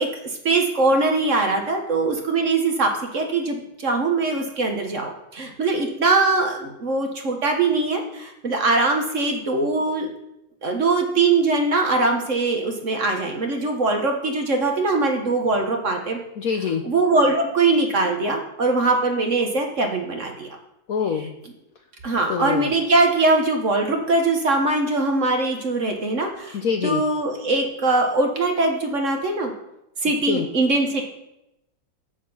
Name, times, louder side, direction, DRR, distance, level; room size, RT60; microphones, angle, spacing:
voice 1, 0.0-10.1 10.6-16.2 16.8-20.5 22.0-29.5 30.0-31.0, right 3 dB, 45° right, 3 dB, 1.3 m, -22 dB
voice 2, 16.4-16.8 20.9-21.4 22.3-22.7 26.5-27.0 30.2-30.5, left 6 dB, 60° left, 5 dB, 1.0 m, -25 dB
7.5 x 6.6 x 7.1 m, 0.87 s
omnidirectional pair, 2.1 m